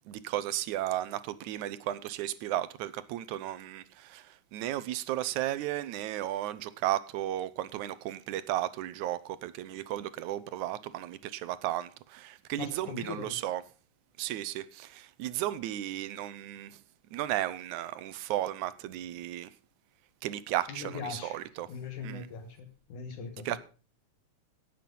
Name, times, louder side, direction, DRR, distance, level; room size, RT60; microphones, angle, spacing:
voice 1, 0.1-13.6 14.2-16.8 17.1-19.5 20.2-21.7 22.0-22.3 23.4-23.6, right 13 dB, 75° right, 2.1 m, -34 dB
voice 2, 12.6-13.4 20.7-21.4 21.7-23.4, left 5 dB, 75° left, 2.9 m, -40 dB
17.5 x 7.7 x 5.4 m
omnidirectional pair, 3.5 m